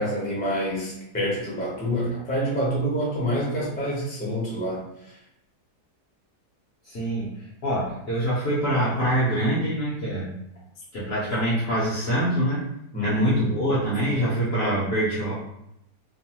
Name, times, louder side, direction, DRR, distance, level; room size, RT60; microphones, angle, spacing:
voice 1, 0.0-4.8 12.9-13.3, equal, 10° left, -5 dB, 0.4 m, -27 dB
voice 2, 6.8-10.4 10.9-12.7 13.0-15.3, right 1 dB, 55° left, -8 dB, 0.7 m, -25 dB
3.0 x 2.1 x 2.9 m, 0.82 s
omnidirectional pair, 1.8 m